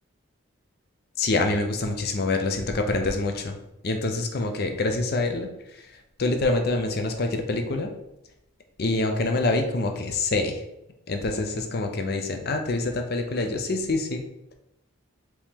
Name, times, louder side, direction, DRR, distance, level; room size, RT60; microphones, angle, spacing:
voice 1, 1.2-3.6 3.8-7.9 8.8-10.6 11.1-14.2, left 2 dB, 45° left, 5 dB, 0.5 m, -26 dB
4.6 x 2.9 x 3.5 m, 0.85 s
head